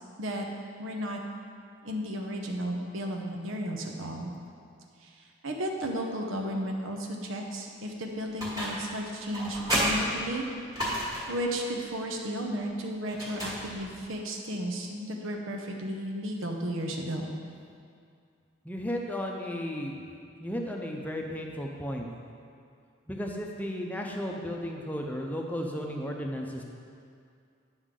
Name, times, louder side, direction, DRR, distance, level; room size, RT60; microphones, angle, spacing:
voice 1, 0.8-1.2 1.8-4.3 5.0-5.1 5.4-10.5 11.3-17.2, equal, 85° right, 1 dB, 0.8 m, -33 dB
sound 1, 8.4-8.9 9.3-11.4 13.1-14.0, equal, 20° right, 1.6 m, -31 dB
voice 2, 18.6-20.0 20.4-22.1 23.1-26.6, equal, 10° left, 1 dB, 0.6 m, -34 dB
9.8 x 6.2 x 3.8 m, 2.3 s
head